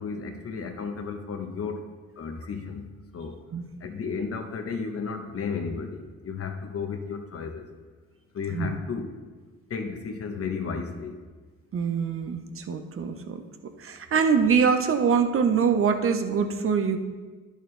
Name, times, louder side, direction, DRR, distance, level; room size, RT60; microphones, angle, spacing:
voice 1, 0.0-3.4 3.8-7.7 8.3-9.2 9.7-11.2, left 5 dB, 50° left, 6 dB, 1.1 m, -33 dB
voice 2, 11.7-13.4 13.8-17.0, right 6 dB, 45° right, 7 dB, 0.9 m, -24 dB
11.0 x 6.5 x 3.3 m, 1.4 s
cardioid pair, 90°, 30 cm